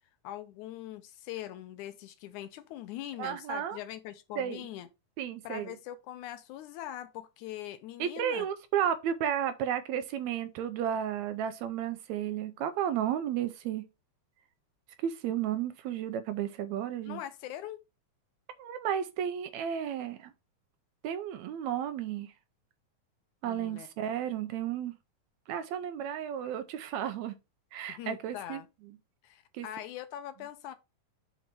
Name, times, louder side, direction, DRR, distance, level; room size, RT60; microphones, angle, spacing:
voice 1, 0.2-4.9 5.4-8.5 17.1-17.8 23.4-23.9 27.9-28.7 29.2-30.7, left 12 dB, 85° left, 2.1 m, -42 dB
voice 2, 3.2-3.8 4.4-4.6 5.2-5.7 8.0-13.8 15.0-17.2 18.6-20.3 21.0-22.3 23.4-24.9 25.5-27.4 27.7-28.6 29.5-29.7, right 9 dB, 80° right, 1.8 m, -33 dB
6.0 x 3.9 x 5.8 m
omnidirectional pair, 3.5 m